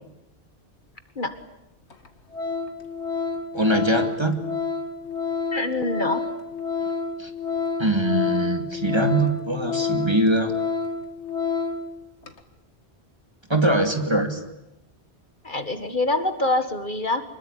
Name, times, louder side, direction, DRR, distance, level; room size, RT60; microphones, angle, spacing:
Organ, 1.3-1.4 1.9-2.1 2.3-11.9 12.2-12.4, left 5 dB, 80° left, 2.2 m, -28 dB
voice 1, 3.5-4.4 7.2-7.3 7.8-10.5 13.5-14.4, right 1 dB, 25° right, 6 dB, 2.4 m, -22 dB
voice 2, 5.5-6.2 15.4-17.2, left 2 dB, 45° left, 9 dB, 1.9 m, -25 dB
25.5 x 21.5 x 10.0 m, 0.90 s
omnidirectional pair, 1.1 m